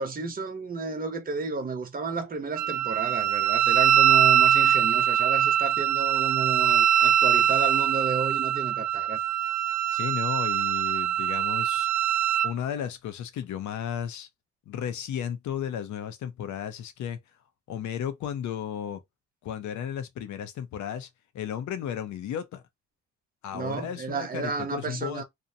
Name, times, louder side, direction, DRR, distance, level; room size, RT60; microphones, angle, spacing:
voice 1, 0.0-9.2 23.5-25.2, right 5 dB, 30° right, 0.9 m, -32 dB
Wind instrument woodwind instrument, 2.6-12.5, right 10 dB, 70° right, 0.5 m, -23 dB
voice 2, 9.9-11.9 12.4-14.3 14.7-17.2 17.7-19.0 19.4-21.1 21.3-22.6 23.4-25.2, left 9 dB, 70° left, 0.7 m, -34 dB
2.6 x 2.1 x 2.7 m
cardioid pair, 90°, 30 cm